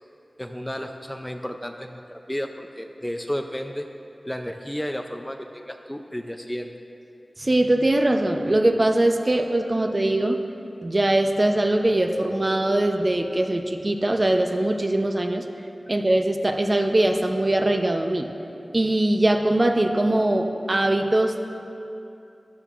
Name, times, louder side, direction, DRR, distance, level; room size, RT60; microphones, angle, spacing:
voice 1, 0.4-3.9 4.2-6.7, equal, 10° left, 4 dB, 0.5 m, -32 dB
voice 2, 7.4-10.4 10.8-15.4 15.9-18.3 18.7-21.4, right 1 dB, 35° right, 5 dB, 0.7 m, -21 dB
13.5 x 11.5 x 2.5 m, 2.8 s
wide cardioid pair, 55°, 0 cm